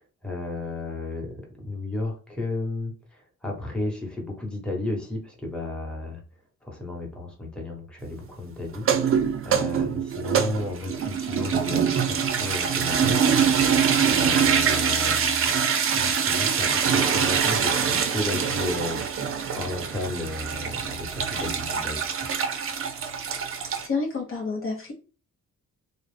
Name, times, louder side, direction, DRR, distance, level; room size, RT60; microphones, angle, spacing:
voice 1, 0.0-6.2 6.6-8.9 9.4-13.7 14.0-15.6 15.9-19.2 19.5-22.3 23.6-23.8, left 2 dB, 5° left, -1 dB, 1.0 m, -33 dB
sound 1, 8.7-23.9, right 7 dB, 45° right, 0.5 m, -24 dB
voice 2, 23.8-24.9, left 4 dB, 45° left, 0 dB, 0.7 m, -29 dB
2.4 x 2.1 x 3.2 m, 0.35 s
cardioid pair, 80°, 30 cm